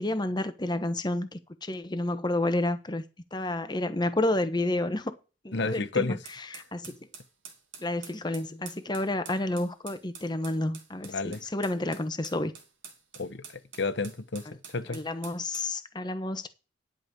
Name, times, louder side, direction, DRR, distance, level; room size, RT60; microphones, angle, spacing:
voice 1, 0.0-3.0 3.3-5.1 5.4-6.9 7.8-12.5 14.9-16.5, left 1 dB, 20° left, 1.1 m, -30 dB
voice 2, 5.5-6.2 11.0-11.4 13.1-13.4 13.8-15.0, left 3 dB, 60° left, 1.0 m, -31 dB
sound 1, 6.3-15.7, right 6 dB, 80° right, 2.7 m, -48 dB
11.0 x 5.3 x 6.7 m
head